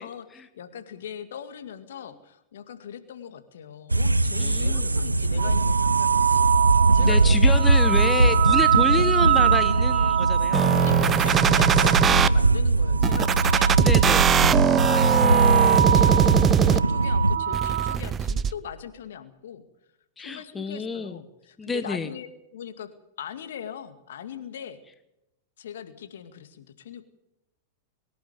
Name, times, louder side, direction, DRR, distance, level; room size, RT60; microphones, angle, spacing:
voice 1, 0.0-6.5 6.9-7.8 10.7-14.3 14.8-19.7 20.2-22.9 23.2-24.8 25.6-27.0, left 8 dB, 65° left, 9 dB, 2.1 m, -40 dB
sound 1, 3.9-17.4, right 2 dB, 90° right, 0.7 m, -22 dB
voice 2, 4.4-4.9 7.0-10.8 13.8-14.3 20.2-21.2 21.6-22.1, left 4 dB, 15° left, 11 dB, 1.4 m, -29 dB
sound 2, 5.4-12.4 12.9-14.3 14.6-18.0, right 10 dB, 60° right, 1.1 m, -25 dB
sound 3, 10.5-12.3 13.0-17.0 17.5-18.5, right 8 dB, 25° right, 0.7 m, -21 dB
23.5 x 12.0 x 9.5 m, 0.87 s
figure-of-eight pair, 95°, 0 cm